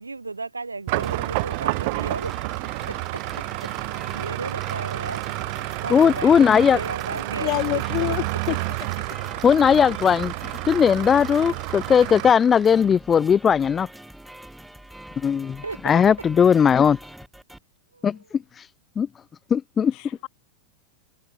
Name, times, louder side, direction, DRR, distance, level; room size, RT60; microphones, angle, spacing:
voice 1, 0.0-2.4 2.9-3.2 3.6-5.2 5.5-7.6 8.0-8.1 15.6-16.2 17.9-18.2, right 3 dB, 80° right, 2.6 m, -35 dB
sound 1, 0.9-17.6, right 1 dB, 5° right, 3.6 m, -45 dB
sound 2, 0.9-12.3, right 26 dB, 50° right, 2.9 m, -30 dB
sound 3, 1.9-13.0, right 8 dB, 25° right, 4.8 m, -43 dB
voice 2, 5.9-6.8 9.4-13.9 15.2-17.0 18.0-18.4 19.0-19.1 19.5-19.9, left 7 dB, 20° left, 0.4 m, -18 dB
voice 3, 7.4-8.6 19.9-20.3, left 23 dB, 40° left, 4.5 m, -27 dB
figure-of-eight pair, 90°, 0 cm